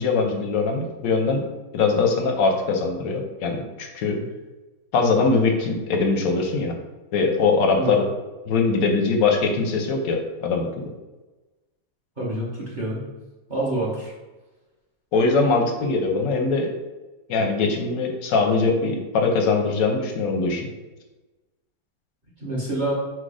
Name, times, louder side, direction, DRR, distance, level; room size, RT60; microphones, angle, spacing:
voice 1, 0.0-1.5 1.7-4.2 4.9-6.7 7.1-8.0 8.5-10.9 15.1-16.7 17.3-20.7, left 4 dB, 65° left, 3 dB, 0.9 m, -22 dB
voice 2, 12.2-13.1 13.5-14.1 22.4-22.9, right 1 dB, 35° right, -7 dB, 0.9 m, -27 dB
4.6 x 2.2 x 4.8 m, 1.1 s
omnidirectional pair, 2.0 m